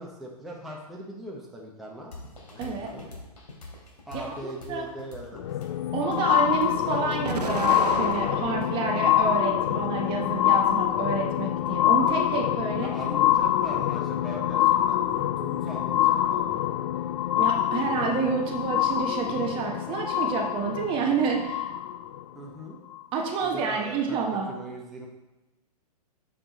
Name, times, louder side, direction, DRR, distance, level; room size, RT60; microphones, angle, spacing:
voice 1, 0.0-2.1 2.6-3.1 4.0-5.5 12.7-16.7 22.3-22.8 23.4-25.1, equal, ahead, -4 dB, 1.1 m, -40 dB
sound 1, 2.1-9.7, left 2 dB, 80° left, 2.9 m, -46 dB
voice 2, 2.6-2.9 4.4-4.8 5.9-12.9 17.4-21.7 23.1-24.5, right 5 dB, 25° right, 1 dB, 1.2 m, -29 dB
sound 2, 5.3-22.2 22.9-23.0, left 12 dB, 40° left, 0.4 m, -25 dB
Explosion, 7.2-8.9 9.4-10.3, right 5 dB, 80° right, 0.9 m, -34 dB
7.4 x 6.8 x 4.1 m, 1.0 s
hypercardioid pair, 130°, 20 cm